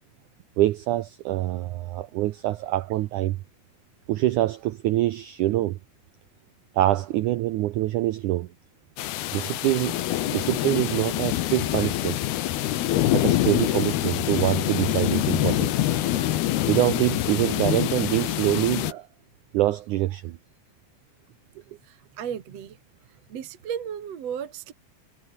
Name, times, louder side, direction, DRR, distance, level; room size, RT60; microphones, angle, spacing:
voice 1, 0.6-3.4 4.1-5.8 6.8-8.5 9.3-10.0 10.3-12.2 13.1-16.3 16.7-19.1 19.5-20.4, right 15 dB, 80° right, 1.8 m, -25 dB
sound 1, 9.0-18.9, left 14 dB, 85° left, 3.2 m, -25 dB
voice 2, 21.8-22.8 23.3-24.7, right 8 dB, 50° right, 2.5 m, -34 dB
omnidirectional pair, 4.5 m